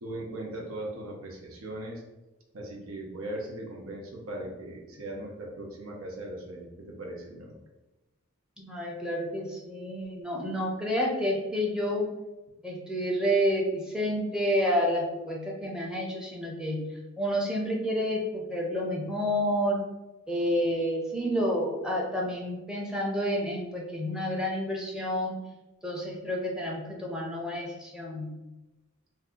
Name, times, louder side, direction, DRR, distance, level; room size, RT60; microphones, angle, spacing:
voice 1, 0.0-2.0 2.5-7.6, right 1 dB, 90° right, 0 dB, 0.8 m, -39 dB
voice 2, 8.6-12.1 12.6-16.9 17.2-19.8 20.3-25.4 25.8-28.3, equal, 5° right, -2 dB, 0.5 m, -29 dB
2.6 x 2.3 x 3.6 m, 1.0 s
head